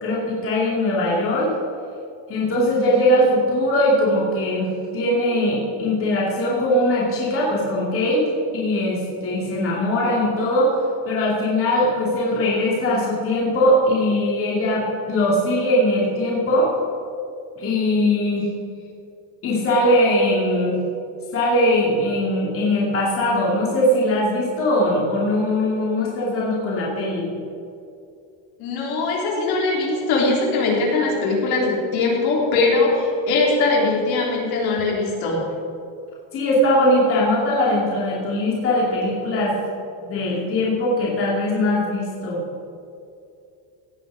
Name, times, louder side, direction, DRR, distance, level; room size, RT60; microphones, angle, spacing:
voice 1, 0.0-1.5 2.3-8.2 8.5-10.8 11.1-16.7 17.6-18.5 19.4-20.8 21.3-27.3 36.3-39.6 40.0-42.4, left 1 dB, 30° left, -5 dB, 2.6 m, -20 dB
voice 2, 28.6-35.4, left 3 dB, 60° left, -3 dB, 3.7 m, -21 dB
17.0 x 9.1 x 5.0 m, 2.6 s
cardioid pair, 175°, 41 cm